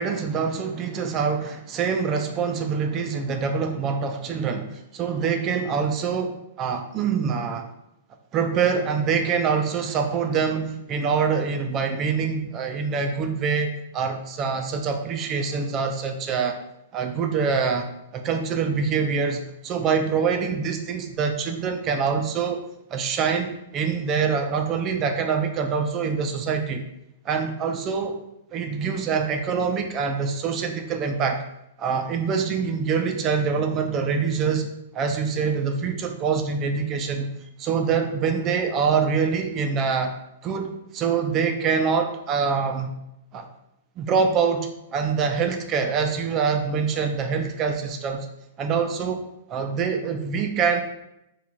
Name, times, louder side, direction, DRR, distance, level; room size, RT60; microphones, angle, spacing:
voice 1, 0.0-7.7 8.3-16.6 16.9-22.6 22.9-26.8 27.2-28.2 28.5-31.4 31.8-37.3 37.6-40.1 40.4-42.9 43.3-43.5 44.0-48.3 48.6-49.2 49.5-50.8, right 5 dB, 30° right, 5 dB, 0.4 m, -25 dB
3.0 x 2.3 x 3.8 m, 0.83 s
hypercardioid pair, 130°, 0 cm